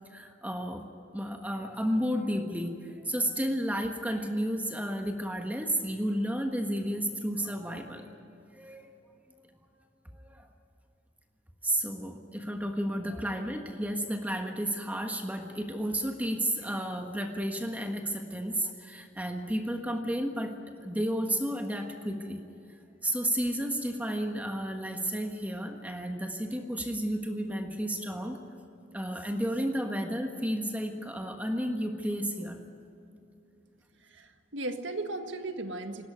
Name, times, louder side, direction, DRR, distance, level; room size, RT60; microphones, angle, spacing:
voice 1, 0.1-0.8 1.1-8.1 8.5-8.9 10.1-10.5 11.6-20.5 20.8-22.4 23.0-28.4 28.9-32.6, equal, 10° right, 4 dB, 1.4 m, -32 dB
voice 2, 34.1-36.1, right 2 dB, 70° right, 6 dB, 1.8 m, -36 dB
19.5 x 17.0 x 9.7 m, 2.7 s
head